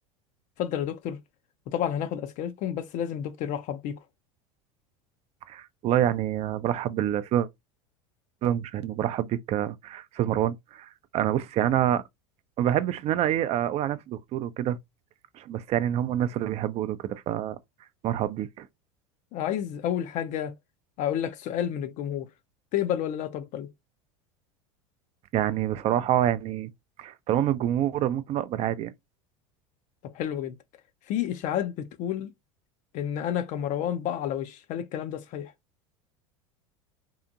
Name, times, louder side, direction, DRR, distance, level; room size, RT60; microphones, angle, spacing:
voice 1, 0.6-1.2 1.7-4.0 19.3-20.5 21.0-22.3 22.7-23.7 30.0-30.5 31.1-32.3 32.9-35.5, left 10 dB, 50° left, 0.4 m, -30 dB
voice 2, 5.5-7.5 8.4-12.0 12.6-14.8 15.3-17.6 18.0-18.7 25.3-26.7 27.0-28.9, right 11 dB, 40° right, 0.4 m, -27 dB
2.8 x 2.5 x 2.4 m
hypercardioid pair, 85°, 17 cm